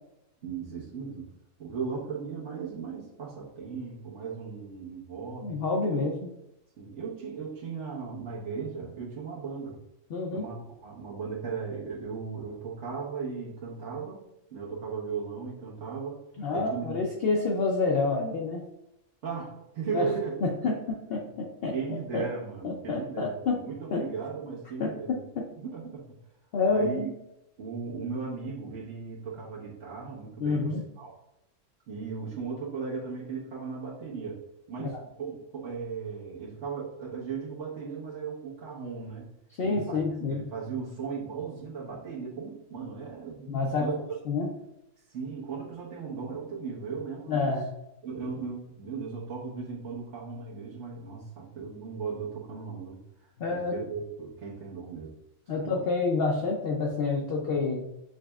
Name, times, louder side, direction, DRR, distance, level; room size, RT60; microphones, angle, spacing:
voice 1, 0.4-1.3 1.6-5.6 5.9-6.0 6.8-9.8 10.3-14.2 14.5-16.2 16.5-17.0 19.2-20.3 20.6-20.7 21.7-25.2 25.6-26.1 26.6-27.1 27.6-31.1 31.9-34.4 34.7-39.3 39.6-43.5 43.8-44.0 45.1-47.5 48.0-55.2 55.5-55.8, right 5 dB, 65° right, -6 dB, 1.4 m, -37 dB
voice 2, 5.4-6.1 10.1-10.4 16.4-18.6 19.9-20.1 20.4-20.8 21.1-21.7 22.1-22.2 22.6-23.6 23.9-24.0 24.8-25.5 26.5-27.1 30.4-30.8 34.8-35.0 39.6-40.4 43.5-43.9 44.3-44.5 47.3-47.7 53.4-53.7 55.5-57.8, left 4 dB, 60° left, -1 dB, 0.7 m, -28 dB
6.2 x 3.3 x 2.3 m, 0.86 s
omnidirectional pair, 1.3 m